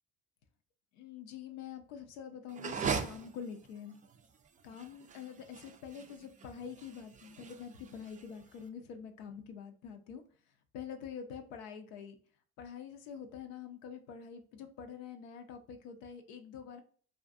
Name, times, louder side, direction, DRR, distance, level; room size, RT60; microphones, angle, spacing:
voice 1, 0.9-4.0 4.6-10.2 10.7-12.2 12.6-16.8, left 7 dB, 75° left, 6 dB, 0.5 m, -46 dB
sound 1, 2.5-8.6, right 6 dB, 25° right, 0.4 m, -40 dB
2.5 x 2.4 x 2.4 m, 0.42 s
hypercardioid pair, 60°, 33 cm